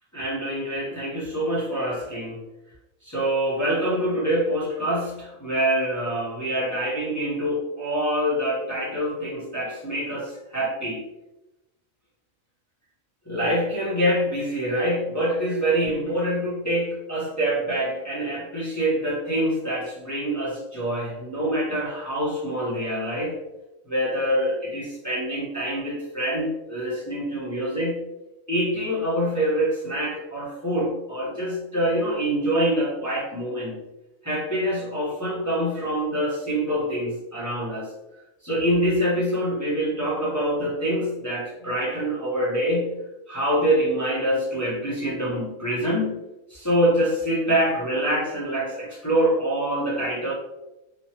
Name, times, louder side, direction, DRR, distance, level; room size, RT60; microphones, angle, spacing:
voice 1, 0.1-2.4 3.0-11.0 13.3-23.4 23.9-28.0 28.5-33.8 34.2-37.9 38.4-42.9 43.3-46.2 46.5-50.3, right 1 dB, 15° left, -8 dB, 0.6 m, -25 dB
3.0 x 2.3 x 2.8 m, 0.97 s
omnidirectional pair, 1.4 m